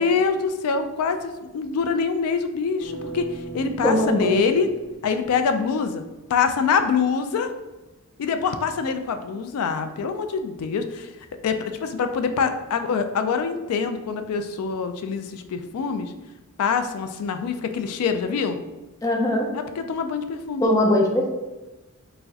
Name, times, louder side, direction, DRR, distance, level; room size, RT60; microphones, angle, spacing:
voice 1, 0.0-4.7 5.0-6.0 6.3-7.5 8.2-11.1 11.4-16.1 16.6-18.6 19.5-20.7, left 5 dB, 75° left, 8 dB, 0.3 m, -25 dB
sound 1, 2.8-5.8, right 2 dB, 55° left, 0.8 m, -39 dB
voice 2, 3.8-4.4 19.0-19.5 20.6-21.3, left 1 dB, 15° left, 0 dB, 0.4 m, -20 dB
4.5 x 2.1 x 2.7 m, 1.1 s
head